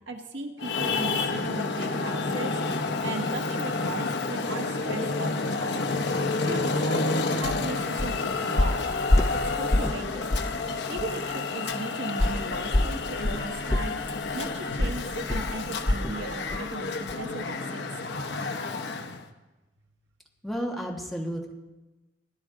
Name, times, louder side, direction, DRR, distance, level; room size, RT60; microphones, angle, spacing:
voice 1, 0.1-2.6 3.0-5.8 6.5-8.8 9.3-10.3 10.9-13.9 14.3-17.8, right 2 dB, 80° right, 3 dB, 1.5 m, -37 dB
Traffic noise roadway noise, 0.6-19.3, left 3 dB, 70° left, 0.8 m, -30 dB
sound 1, 7.4-7.6 8.0-8.2 8.6-10.0 10.3-10.6 11.0-11.1 12.2-16.2 16.5-16.7 17.1-17.2, left 1 dB, 20° left, 0.4 m, -26 dB
voice 2, 20.4-21.5, equal, ahead, -1 dB, 1.3 m, -32 dB
17.5 x 10.5 x 3.8 m, 1.1 s
head